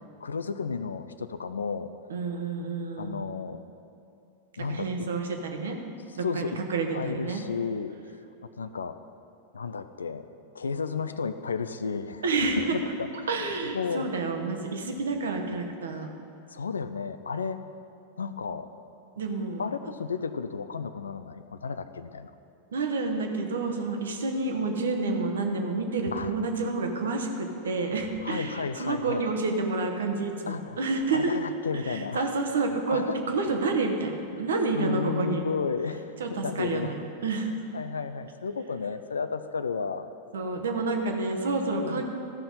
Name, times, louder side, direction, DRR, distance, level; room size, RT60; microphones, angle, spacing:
voice 1, 0.2-1.9 3.0-3.6 4.6-4.9 6.2-6.6 6.9-7.9 8.6-9.0 9.5-10.3 10.5-12.2 12.7-13.4 13.7-14.1 16.5-17.7 18.2-18.7 19.6-22.3 26.1-26.3 28.2-29.3 30.5-30.8 31.1-32.3 32.9-33.2 34.7-36.9 37.5-40.1 41.7-42.0, left 5 dB, 70° left, 11 dB, 0.4 m, -33 dB
voice 2, 2.1-3.2 4.7-5.8 6.2-7.5 12.2-12.8 13.3-16.1 19.2-19.6 22.7-31.4 31.8-35.5 36.2-37.5 40.3-42.0, right 3 dB, 65° right, 3 dB, 1.1 m, -29 dB
13.5 x 5.8 x 5.4 m, 2.7 s
figure-of-eight pair, 90°, 0 cm